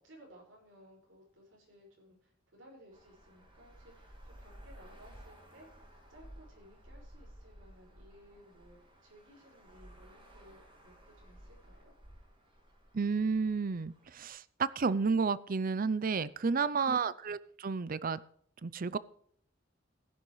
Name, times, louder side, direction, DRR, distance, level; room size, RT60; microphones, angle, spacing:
voice 1, 0.0-11.9, equal, 75° right, 0 dB, 5.6 m, -59 dB
Traffic noise roadway noise, 2.9-14.3, equal, 30° right, 4.1 m, -56 dB
voice 2, 12.9-18.2 18.6-19.0, right 5 dB, 45° right, 18 dB, 0.5 m, -31 dB
16.5 x 10.0 x 3.2 m, 0.63 s
head